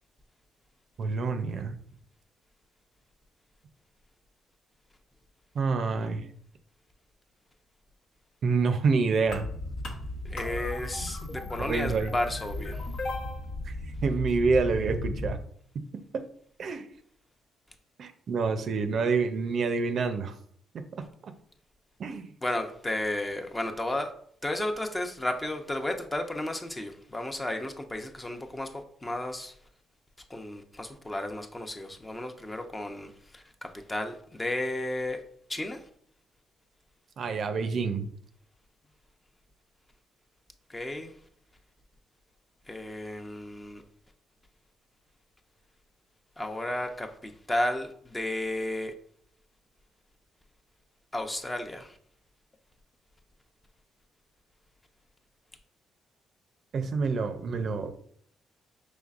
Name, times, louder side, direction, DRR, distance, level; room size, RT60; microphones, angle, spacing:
voice 1, 1.0-1.7 5.5-6.3 8.4-9.5 11.7-12.1 13.7-13.8 14.0-15.4 16.1-16.2 16.6-16.9 18.0-20.3 21.2-21.3 22.0-22.3 37.2-38.1 56.7-57.9, right 4 dB, 55° right, 0.5 m, -27 dB
sound 1, 9.3-15.3, left 2 dB, 75° left, 1.0 m, -35 dB
voice 2, 10.2-12.9 22.4-24.1 24.4-29.6 30.3-35.2 35.5-35.9 40.7-41.2 42.7-43.8 46.4-48.9 51.1-52.0, left 1 dB, 15° left, 0.6 m, -33 dB
5.3 x 3.2 x 2.4 m
cardioid pair, 90°, 0 cm